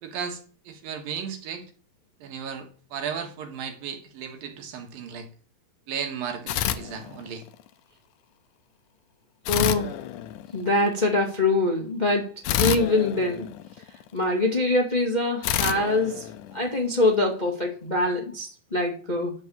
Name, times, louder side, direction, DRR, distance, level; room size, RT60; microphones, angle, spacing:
voice 1, 0.0-1.7 2.2-5.3 5.9-7.4, right 7 dB, 75° right, 4 dB, 3.2 m, -35 dB
sound 1, 6.5-7.6 9.5-10.8 12.4-14.1 15.4-17.0, left 12 dB, 75° left, 1.9 m, -29 dB
voice 2, 9.5-9.9 10.5-13.5 14.1-19.3, left 2 dB, 15° left, 0 dB, 1.6 m, -24 dB
12.5 x 5.4 x 7.2 m, 0.41 s
omnidirectional pair, 4.2 m